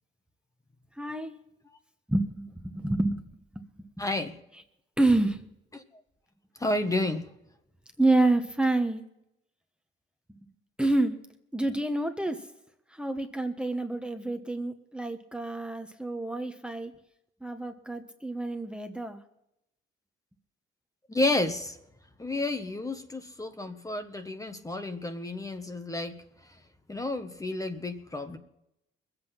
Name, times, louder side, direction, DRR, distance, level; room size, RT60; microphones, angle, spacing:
voice 1, 1.0-1.4 2.1-3.2 3.5-3.9 5.0-5.4 8.0-9.0 10.8-11.1 11.5-12.4 12.9-16.9 17.4-19.2, right 2 dB, 5° right, 6 dB, 1.2 m, -28 dB
voice 2, 4.0-4.3 5.7-5.8 6.6-7.2 21.1-21.8 22.2-26.1 26.9-28.4, left 2 dB, 15° left, 7 dB, 1.3 m, -31 dB
21.0 x 8.1 x 5.8 m, 0.81 s
cardioid pair, 90°, 20 cm